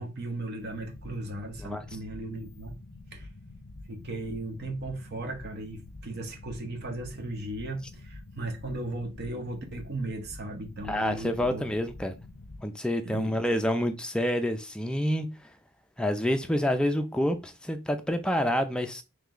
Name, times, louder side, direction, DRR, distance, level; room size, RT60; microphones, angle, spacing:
voice 1, 0.0-2.7 3.1-3.3 3.9-11.7 13.0-13.4, right 2 dB, 50° right, 0.9 m, -36 dB
sound 1, 0.6-12.7, left 2 dB, 55° left, 0.7 m, -47 dB
voice 2, 10.9-12.1 12.6-15.3 16.0-19.0, equal, 5° left, 0.4 m, -28 dB
3.2 x 3.1 x 3.7 m
head